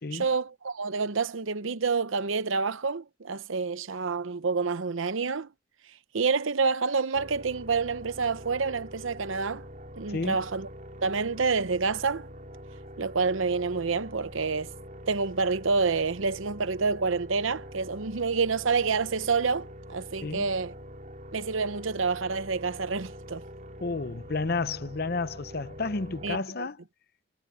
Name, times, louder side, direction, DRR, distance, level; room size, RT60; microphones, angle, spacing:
voice 1, 0.1-5.5 6.1-9.6 10.0-10.7 11.0-12.3 13.0-14.7 15.1-20.7 21.3-23.4 26.2-26.7, right 4 dB, 80° right, 0.8 m, -28 dB
sound 1, 7.1-26.4, equal, 40° right, 4.7 m, -45 dB
voice 2, 23.8-26.8, left 3 dB, 50° left, 0.8 m, -31 dB
head